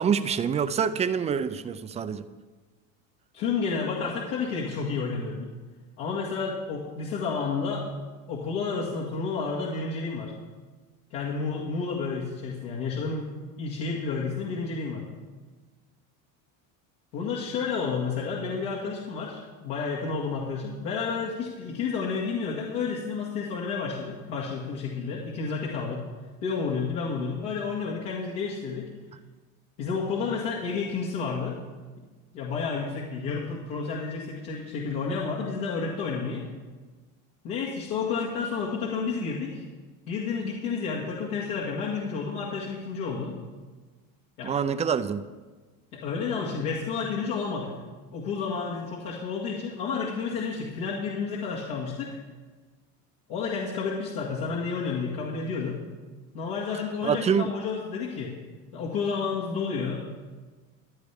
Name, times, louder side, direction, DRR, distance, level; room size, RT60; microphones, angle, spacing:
voice 1, 0.0-2.2 44.4-45.2 57.0-57.5, right 7 dB, 20° right, 12 dB, 0.3 m, -26 dB
voice 2, 3.3-5.5 6.0-7.9 8.3-10.3 11.1-13.3 13.6-15.0 17.1-26.0 26.4-28.9 29.8-31.6 32.0-32.1 32.3-36.5 37.4-39.6 40.1-43.4 44.4-44.5 45.9-47.7 48.1-52.2 53.3-55.8 56.3-58.3 58.7-60.1, left 5 dB, 75° left, -5 dB, 2.0 m, -30 dB
15.5 x 10.0 x 3.5 m, 1.3 s
cardioid pair, 125°, 41 cm